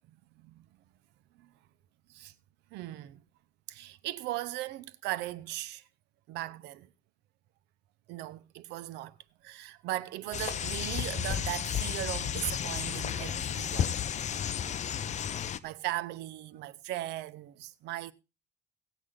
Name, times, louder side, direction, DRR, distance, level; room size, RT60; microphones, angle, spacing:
voice 1, 2.7-3.2 3.7-5.8 6.3-6.9 8.1-9.2 9.4-14.0 15.3-18.1, right 15 dB, 85° right, 0.9 m, -38 dB
sound 1, 10.3-15.6, left 9 dB, 45° left, 0.8 m, -33 dB
17.0 x 8.4 x 3.8 m
cardioid pair, 110°, 17 cm